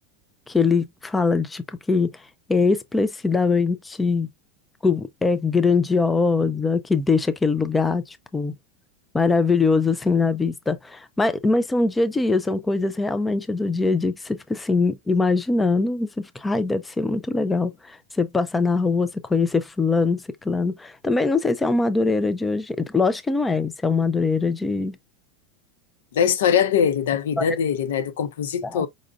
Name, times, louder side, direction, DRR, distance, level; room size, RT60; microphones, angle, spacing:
voice 1, 0.5-2.2 2.5-4.3 4.8-8.5 9.1-25.0 27.4-27.6 28.6-28.8, left 4 dB, 10° left, 0.4 m, -22 dB
voice 2, 26.1-28.9, left 8 dB, 85° left, 0.7 m, -22 dB
5.1 x 2.5 x 2.3 m
supercardioid pair, 155°, 0 cm